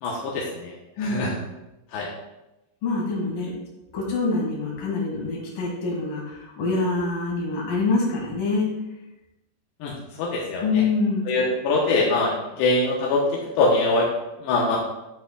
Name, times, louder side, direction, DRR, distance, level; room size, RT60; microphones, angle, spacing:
voice 1, 0.0-0.7 1.0-1.3 1.9-2.1 9.8-9.9 10.2-10.8 11.3-13.2 13.6-14.1 14.4-14.8, left 2 dB, 85° left, -3 dB, 3.1 m, -23 dB
voice 2, 1.0-1.4 2.8-3.5 3.9-8.7 10.6-11.3, left 3 dB, 60° left, -3 dB, 3.7 m, -25 dB
9.9 x 7.8 x 2.3 m, 0.96 s
omnidirectional pair, 4.7 m